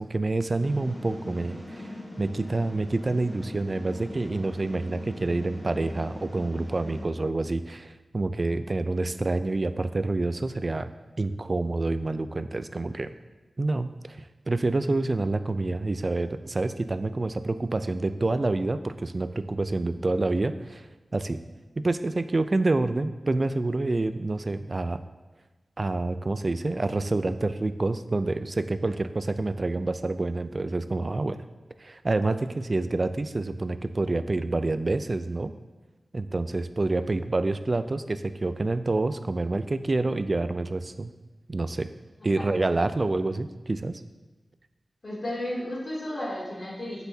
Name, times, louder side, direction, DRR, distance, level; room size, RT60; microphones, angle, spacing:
voice 1, 0.0-1.9 2.2-10.9 11.2-13.1 13.6-14.2 14.5-20.9 21.1-21.4 21.8-25.0 25.8-31.4 31.8-35.5 36.1-41.1 41.5-41.9 42.2-44.0, right 2 dB, 40° right, 11 dB, 0.4 m, -27 dB
sound 1, 0.6-7.0, left 1 dB, 30° left, 1.8 m, -41 dB
voice 2, 45.0-47.1, left 1 dB, 50° left, -6 dB, 2.7 m, -33 dB
9.1 x 7.8 x 2.8 m, 1.2 s
wide cardioid pair, 115°, 0 cm